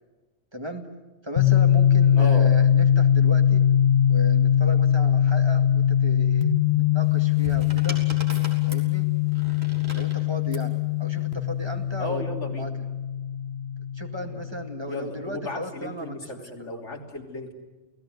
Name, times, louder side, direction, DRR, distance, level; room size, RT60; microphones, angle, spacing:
voice 1, 0.5-0.8 1.2-3.6 4.1-8.0 8.7-9.1 9.9-12.3 12.6-12.9 13.9-16.7, equal, 20° right, 4 dB, 2.2 m, -36 dB
sound 1, 1.4-15.0, left 9 dB, 60° left, 1.6 m, -21 dB
voice 2, 2.2-2.5 12.0-12.7 14.3-14.4 14.9-17.5, left 2 dB, 80° left, 2 dB, 3.5 m, -34 dB
sound 2, 7.0-10.7 11.8-12.1, right 1 dB, 60° right, 4.7 m, -40 dB
28.5 x 18.0 x 9.4 m, 1.2 s
omnidirectional pair, 1.2 m